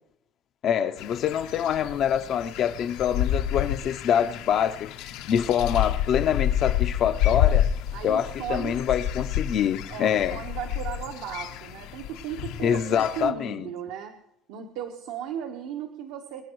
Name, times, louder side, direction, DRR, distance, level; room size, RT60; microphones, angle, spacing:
voice 1, 0.6-7.7 8.0-10.4 12.6-13.7, left 9 dB, 40° left, 0.5 m, -25 dB
sound 1, 1.0-13.3, left 10 dB, 70° left, 0.8 m, -29 dB
voice 2, 7.9-8.8 9.9-14.1 14.5-16.4, right 9 dB, 80° right, 1.2 m, -36 dB
24.0 x 10.5 x 3.1 m
cardioid pair, 165°, 0 cm